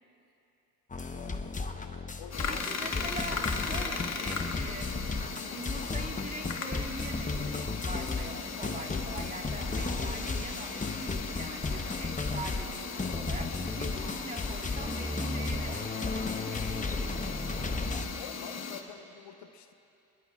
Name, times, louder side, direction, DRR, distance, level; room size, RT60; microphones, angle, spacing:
sound 1, 0.9-18.0, left 3 dB, 15° left, 1.1 m, -34 dB
voice 1, 1.1-2.6 18.1-19.7, left 9 dB, 60° left, 7 dB, 1.1 m, -48 dB
sound 2, 2.3-18.8, left 5 dB, 35° left, 1.7 m, -38 dB
voice 2, 2.5-4.9 5.5-17.2, right 2 dB, 15° right, 0 dB, 2.4 m, -43 dB
27.5 x 21.0 x 2.5 m, 2.8 s
hypercardioid pair, 65°, 47 cm